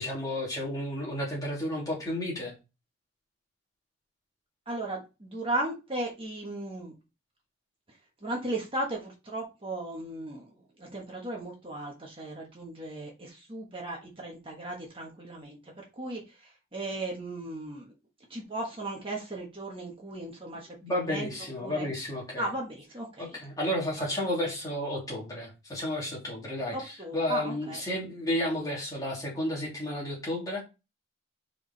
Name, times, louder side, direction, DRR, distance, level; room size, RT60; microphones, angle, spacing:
voice 1, 0.0-2.5 20.8-22.5 23.2-30.6, left 1 dB, 20° left, -4 dB, 2.7 m, -32 dB
voice 2, 4.7-6.9 8.2-10.5 10.8-17.9 18.3-20.8 21.1-21.3 21.6-21.9 22.4-23.4 24.0-24.1 26.7-27.8, right 2 dB, 25° right, -1 dB, 1.3 m, -36 dB
5.0 x 4.9 x 4.0 m, 0.28 s
head